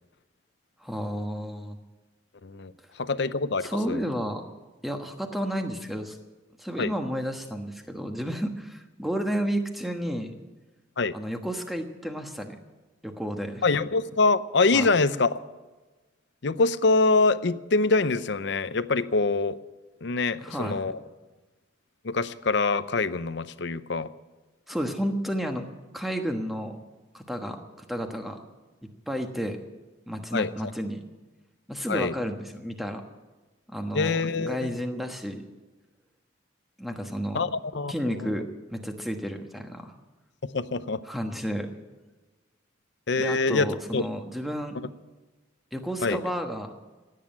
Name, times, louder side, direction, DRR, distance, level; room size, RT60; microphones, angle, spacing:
voice 1, 0.8-1.8 3.6-4.5 4.8-6.2 6.6-10.3 11.1-12.6 13.0-13.6 14.7-14.9 20.4-20.8 24.7-25.6 25.9-26.8 27.1-27.6 27.9-28.4 29.1-29.6 30.1-31.0 31.7-33.0 33.7-35.4 36.8-37.4 37.9-38.4 38.7-39.9 41.1-41.7 43.2-44.7 45.7-46.7, equal, ahead, 4 dB, 1.2 m, -31 dB
voice 2, 2.4-4.1 6.8-6.9 11.0-11.1 13.6-15.3 16.4-19.6 20.0-21.0 22.0-24.1 30.3-30.7 31.9-32.1 33.9-34.8 37.3-38.5 40.4-41.0 43.1-44.0 44.7-44.9 46.0-46.2, left 3 dB, 60° left, 14 dB, 0.6 m, -25 dB
16.0 x 9.3 x 8.7 m, 1.2 s
head